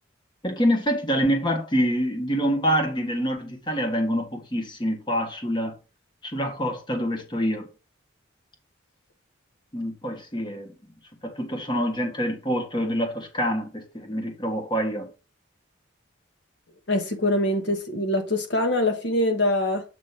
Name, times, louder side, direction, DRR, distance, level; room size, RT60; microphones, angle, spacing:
voice 1, 0.4-5.8 6.2-7.7 9.7-10.7 11.2-15.1, equal, 20° left, 1.4 m, -26 dB
voice 2, 16.9-19.8, left 1 dB, 55° left, 1.1 m, -24 dB
7.9 x 3.0 x 5.7 m
head